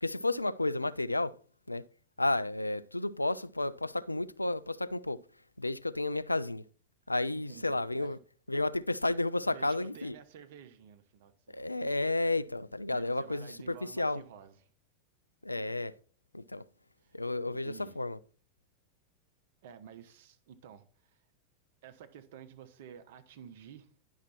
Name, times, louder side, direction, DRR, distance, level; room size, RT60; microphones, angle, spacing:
voice 1, 0.0-1.4 1.7-1.8 2.2-5.2 5.6-6.6 7.1-8.2 8.5-10.2 11.5-14.2 15.4-15.9 16.3-16.6 17.1-18.2, left 2 dB, 90° left, 0.3 m, -32 dB
voice 2, 7.3-8.1 9.4-11.8 12.9-14.5 17.0-17.2 17.6-18.0 19.6-21.2 21.8-23.9, right 8 dB, 60° right, 1.1 m, -51 dB
10.0 x 5.8 x 4.3 m
figure-of-eight pair, 90°, 0 cm